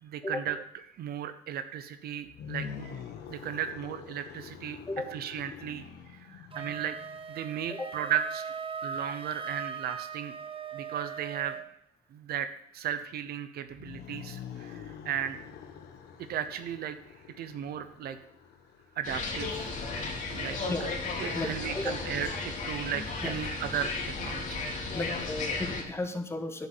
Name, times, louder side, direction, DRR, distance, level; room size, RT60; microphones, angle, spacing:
voice 1, 0.0-0.6 0.9-3.0 3.3-4.8 5.1-7.0 7.3-8.4 8.8-10.4 10.7-11.6 12.1-15.4 16.3-17.0 17.4-18.2 19.0-19.7 20.3-20.7 21.2-24.6, right 9 dB, 65° right, 11 dB, 0.9 m, -35 dB
Deep Growling, 2.2-7.4 13.7-19.3, left 7 dB, 80° left, 1.7 m, -45 dB
Wind instrument woodwind instrument, 6.5-11.7, right 6 dB, 30° right, 1.0 m, -39 dB
sound 1, 19.0-25.8, left 3 dB, 45° left, 2.9 m, -34 dB
voice 2, 21.3-22.0 23.2-23.3 24.9-26.7, left 2 dB, 15° left, 7 dB, 1.4 m, -34 dB
9.6 x 7.2 x 7.9 m, 0.76 s
cardioid pair, 110°, 17 cm